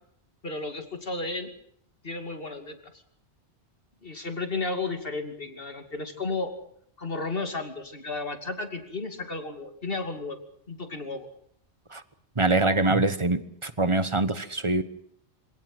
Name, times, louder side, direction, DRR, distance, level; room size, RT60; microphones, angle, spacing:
voice 1, 0.4-1.5 2.0-2.8 4.0-6.5 7.0-10.4 10.7-11.3, left 3 dB, 55° left, 7 dB, 3.0 m, -33 dB
voice 2, 12.4-14.8, right 2 dB, 25° right, 13 dB, 1.2 m, -24 dB
26.5 x 17.5 x 7.9 m, 0.67 s
omnidirectional pair, 1.2 m